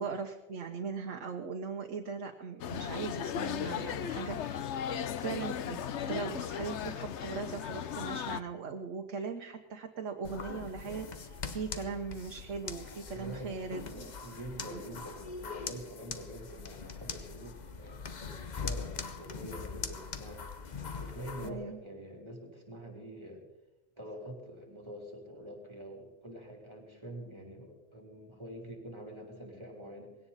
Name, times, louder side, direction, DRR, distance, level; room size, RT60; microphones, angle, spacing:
voice 1, 0.0-5.8 6.1-14.4 14.7-14.8 21.4-21.8, right 5 dB, 75° right, 3 dB, 1.3 m, -39 dB
sound 1, 2.6-8.4, left 9 dB, 65° left, 1.0 m, -36 dB
sound 2, 10.2-21.5, left 5 dB, 40° left, 0.9 m, -42 dB
voice 2, 13.1-13.6 13.9-23.4 24.0-30.2, right 1 dB, 20° right, 0 dB, 3.3 m, -46 dB
20.5 x 17.0 x 4.1 m, 1.0 s
omnidirectional pair, 1.3 m